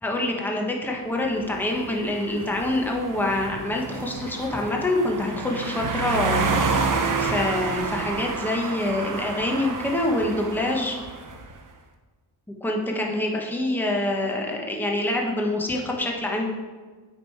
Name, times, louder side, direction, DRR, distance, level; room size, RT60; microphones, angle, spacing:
voice 1, 0.0-11.0 12.6-16.6, left 1 dB, 5° left, 0 dB, 1.0 m, -26 dB
sound 1, 1.2-11.5, right 4 dB, 40° right, 0.8 m, -29 dB
8.9 x 5.2 x 4.6 m, 1.4 s
wide cardioid pair, 110°, 47 cm